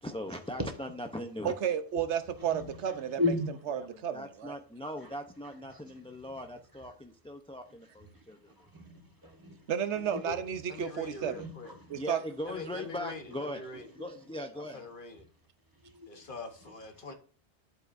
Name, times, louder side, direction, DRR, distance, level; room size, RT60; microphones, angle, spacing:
voice 1, 0.0-1.5 3.8-3.9 4.1-8.4 11.9-14.8, left 1 dB, 10° left, 0.4 m, -40 dB
voice 2, 1.4-3.2 3.7-4.6 9.7-11.5 11.9-12.2, right 8 dB, 85° right, 1.1 m, -32 dB
voice 3, 3.2-3.5 5.7-5.8 8.1-8.2 8.6-9.6 10.1-10.4 10.8-10.9 11.2-11.5 11.8-12.0 15.8-16.1, left 2 dB, 20° right, 1.5 m, -34 dB
voice 4, 10.7-11.8 12.5-13.9 14.5-15.2 16.1-17.1, left 3 dB, 50° left, 1.2 m, -44 dB
11.0 x 8.1 x 2.6 m
omnidirectional pair, 1.1 m